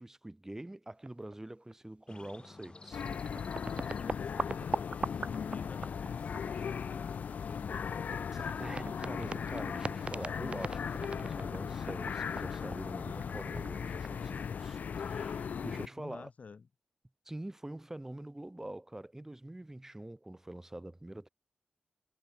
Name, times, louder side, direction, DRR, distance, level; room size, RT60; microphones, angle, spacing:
voice 1, 0.0-3.0 6.5-6.8 8.3-16.3 17.3-21.3, right 1 dB, 15° right, 2.5 m, -45 dB
sound 1, 1.0-1.4 1.7-1.8 2.7-2.8 3.0-6.8 7.1-14.8, right 3 dB, 45° right, 1.0 m, -41 dB
sound 2, 2.1-7.7, left 3 dB, 35° left, 5.6 m, -54 dB
sound 3, 2.9-15.9, left 7 dB, 85° left, 0.4 m, -37 dB
voice 2, 4.5-6.1 6.3-8.0 15.8-16.7, left 5 dB, 65° left, 1.0 m, -50 dB
wide cardioid pair, 75°, 3 cm